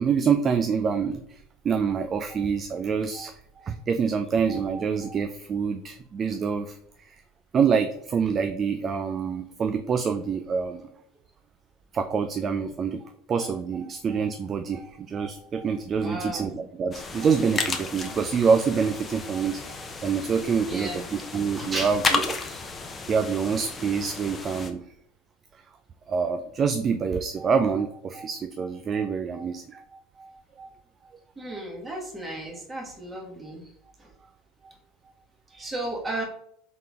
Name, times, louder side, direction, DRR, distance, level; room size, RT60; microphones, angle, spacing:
voice 1, 0.0-6.8 7.0-7.2 7.5-10.9 11.9-13.0 13.3-22.2 23.1-24.8 26.1-30.7 31.5-31.6, right 6 dB, 35° right, 7 dB, 0.4 m, -26 dB
voice 2, 15.9-16.5 20.6-21.0 21.5-22.0 22.4-22.6 31.4-33.6 34.0-34.1 35.5-36.2, right 1 dB, 15° right, -1 dB, 1.6 m, -34 dB
sound 1, 16.9-24.7, left 4 dB, 25° left, 0.7 m, -33 dB
4.0 x 3.7 x 3.6 m, 0.69 s
hypercardioid pair, 80°, 0 cm